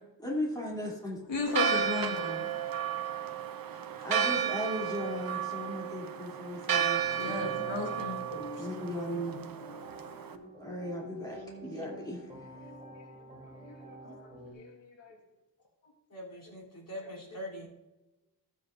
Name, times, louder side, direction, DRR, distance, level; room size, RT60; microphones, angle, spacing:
voice 1, 0.2-1.2 3.9-7.5 8.6-9.4 10.6-12.3, equal, 10° left, -4 dB, 2.8 m, -37 dB
voice 2, 1.3-2.4 7.2-8.7 9.7-9.8 12.9-13.1 13.4-13.8 14.0-15.2, left 4 dB, 80° left, 0 dB, 1.7 m, -36 dB
Church bell, 1.5-10.3, right 8 dB, 50° right, 0.7 m, -33 dB
sound 1, 6.9-14.5, equal, 15° right, 3.1 m, -47 dB
voice 3, 16.1-17.7, equal, 45° left, -4 dB, 3.1 m, -43 dB
14.0 x 8.1 x 2.5 m, 1.1 s
wide cardioid pair, 125°, 44 cm